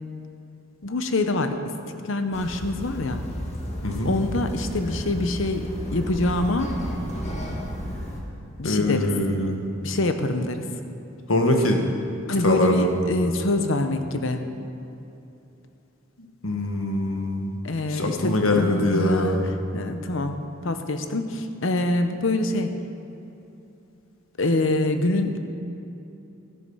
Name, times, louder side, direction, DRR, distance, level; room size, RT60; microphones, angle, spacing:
voice 1, 0.8-1.5 2.0-3.2 4.0-6.7 8.6-9.1 9.8-10.6 12.3-14.5 17.6-19.4 19.7-22.8 24.4-25.4, left 2 dB, 70° left, 7 dB, 0.9 m, -25 dB
sound 1, 2.3-8.2, equal, 35° left, 1.8 m, -32 dB
voice 2, 3.8-4.1 8.6-9.6 11.3-11.8 12.4-13.0 16.4-17.6 17.9-19.5, left 1 dB, 90° left, 3 dB, 1.5 m, -23 dB
13.5 x 9.9 x 5.6 m, 2.8 s
head